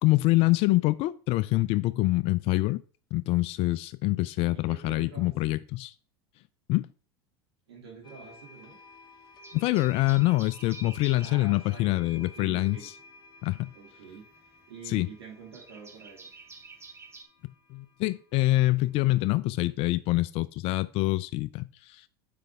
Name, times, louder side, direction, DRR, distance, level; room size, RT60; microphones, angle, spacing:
voice 1, 0.0-2.8 3.1-5.9 6.7-6.9 9.5-12.9 13.4-13.7 14.9-15.1 17.7-22.1, left 19 dB, 50° left, 0.4 m, -25 dB
voice 2, 4.4-5.5 7.7-8.8 11.2-12.9 13.7-16.3, right 5 dB, 85° right, 2.6 m, -47 dB
sound 1, 8.0-19.7, left 2 dB, 35° left, 1.3 m, -54 dB
sound 2, 8.2-8.9 9.3-11.4 13.0-17.2, right 4 dB, 20° right, 0.9 m, -50 dB
6.7 x 5.1 x 3.5 m
hypercardioid pair, 90°, 13 cm